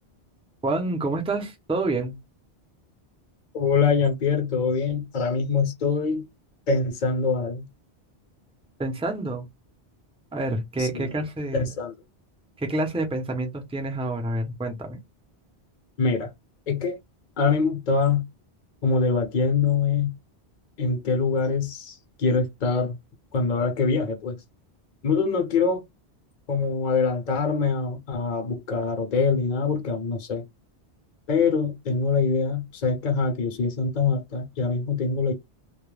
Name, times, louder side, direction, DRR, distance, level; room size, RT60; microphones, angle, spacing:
voice 1, 0.6-2.2 8.8-9.5 10.3-11.7 12.6-15.0, right 2 dB, 5° right, 0.5 m, -28 dB
voice 2, 3.5-6.3 6.7-7.7 10.8-11.1 11.5-11.9 16.0-16.3 16.7-17.0 17.4-18.2 18.8-20.1 20.8-23.0 23.3-24.4 25.0-25.8 26.5-30.4 31.3-35.3, left 5 dB, 50° left, 0.7 m, -24 dB
2.2 x 2.1 x 3.1 m
omnidirectional pair, 1.1 m